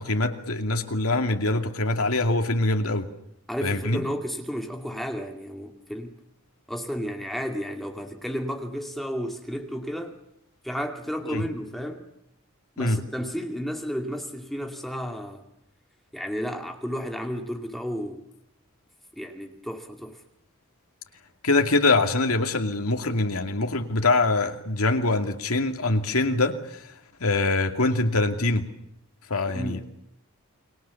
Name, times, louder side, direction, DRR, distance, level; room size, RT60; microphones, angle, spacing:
voice 1, 0.0-3.1 3.6-4.0 11.3-11.4 12.8-13.0 21.4-26.8 27.2-28.7 29.3-29.9, left 2 dB, 85° left, 5 dB, 2.5 m, -24 dB
voice 2, 3.5-6.2 6.7-10.2 10.6-12.1 12.8-15.4 16.1-18.3 19.2-20.2 29.5-29.9, equal, ahead, 3 dB, 2.3 m, -32 dB
29.5 x 22.5 x 7.1 m, 0.77 s
head